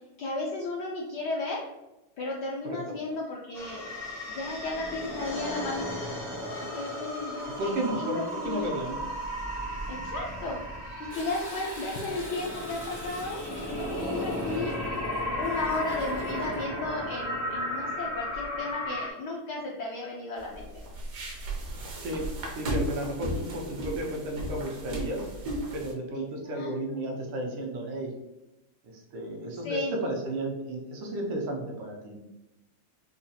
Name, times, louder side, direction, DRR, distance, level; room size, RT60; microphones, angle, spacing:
voice 1, 0.2-1.6 2.2-3.9 4.3-5.9 6.7-8.7 9.9-10.6 11.0-14.7 15.4-20.8 26.1-27.1 29.6-29.9, left 2 dB, 75° left, -2 dB, 1.0 m, -34 dB
sound 1, 3.5-19.1, equal, 15° left, 0.5 m, -35 dB
voice 2, 7.6-9.0 22.0-22.3 22.5-25.2 25.7-28.1 28.9-32.2, right 1 dB, 85° right, 1 dB, 1.6 m, -33 dB
Toilet flush, 11.1-16.7 18.1-18.6 19.1-19.2, left 1 dB, 40° left, 1.4 m, -45 dB
sound 2, 20.4-25.9, right 1 dB, 60° right, 0.9 m, -35 dB
5.0 x 2.7 x 2.3 m, 0.96 s
omnidirectional pair, 2.3 m